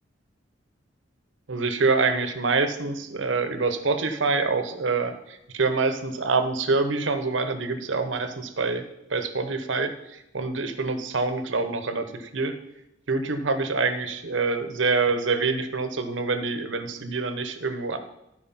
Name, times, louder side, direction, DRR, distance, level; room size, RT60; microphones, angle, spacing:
voice 1, 1.5-8.8 9.1-12.5 13.1-18.0, right 3 dB, 75° right, 9 dB, 0.9 m, -26 dB
12.5 x 4.7 x 5.7 m, 0.87 s
head